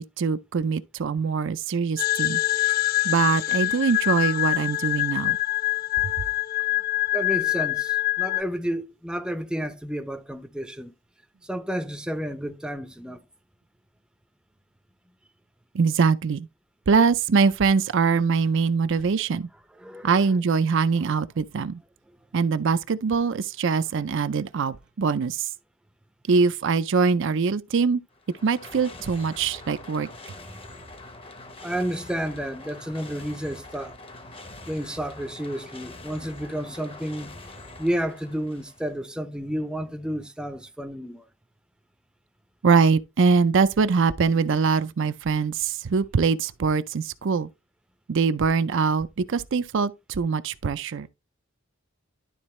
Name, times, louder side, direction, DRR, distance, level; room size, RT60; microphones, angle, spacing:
voice 1, 0.0-2.4 3.0-5.4 15.7-16.5 16.9-19.5 20.0-21.8 22.3-25.5 26.3-28.0 28.4-30.1 42.6-47.5 48.1-51.1, right 5 dB, 65° right, 0.5 m, -23 dB
sound 1, 2.0-8.4, left 18 dB, 45° left, 0.3 m, -25 dB
voice 2, 7.1-10.9 11.4-13.2 19.8-20.3 31.6-34.0 34.7-37.4 37.8-41.3, equal, 5° right, 0.6 m, -31 dB
sound 2, 28.1-39.0, left 2 dB, 25° left, 0.8 m, -44 dB
11.5 x 3.9 x 3.1 m
head